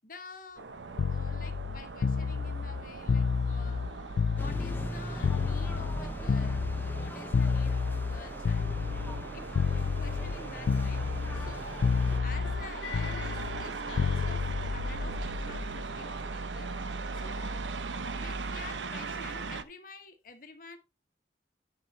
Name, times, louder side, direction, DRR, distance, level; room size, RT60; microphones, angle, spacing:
voice 1, 0.0-0.7 1.1-3.9 4.3-6.6 7.0-8.7 9.3-11.0 11.3-11.9 12.2-16.7 17.1-17.6 18.0-20.8, left 3 dB, 50° left, 7 dB, 1.3 m, -49 dB
sound 1, 0.6-19.6, right 3 dB, 90° right, 0.8 m, -39 dB
sound 2, 1.0-4.9 5.2-9.2 9.5-10.4 10.7-11.6 11.8-15.8 17.0-17.3, left 5 dB, 75° left, 0.3 m, -30 dB
sound 3, 4.4-12.2, left 1 dB, 10° left, 0.8 m, -42 dB
10.5 x 5.0 x 4.2 m, 0.26 s
head